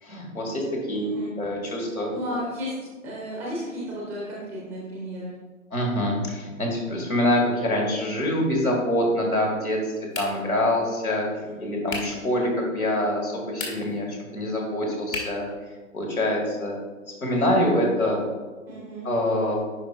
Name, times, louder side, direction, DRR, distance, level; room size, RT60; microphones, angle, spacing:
voice 1, 0.0-2.1 5.7-9.8 10.2-11.2 11.6-15.5 15.9-16.8 17.1-18.2 19.0-19.5, left 1 dB, 85° left, -2 dB, 2.2 m, -25 dB
voice 2, 0.9-1.3 2.1-2.7 3.0-5.4 11.4-11.7 18.7-19.1, equal, 5° right, -5 dB, 0.5 m, -34 dB
sound 1, 10.1-10.6 11.9-12.2 13.4-14.0 15.1-15.5, left 3 dB, 65° left, 1.9 m, -34 dB
10.5 x 4.8 x 2.5 m, 1.3 s
figure-of-eight pair, 120°, 42 cm